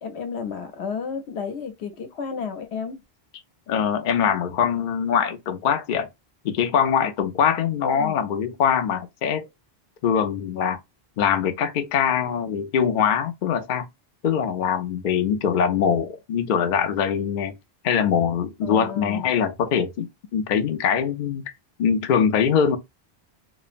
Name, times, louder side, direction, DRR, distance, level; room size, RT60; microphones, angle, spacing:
voice 1, 0.0-3.0 7.8-8.2 18.6-19.3, left 6 dB, 80° left, 1.0 m, -32 dB
voice 2, 3.7-6.1 6.4-9.5 10.0-10.8 11.2-13.9 14.2-17.5 17.8-21.4 21.8-22.8, left 7 dB, 60° left, 0.6 m, -23 dB
3.0 x 2.0 x 2.4 m
omnidirectional pair, 1.1 m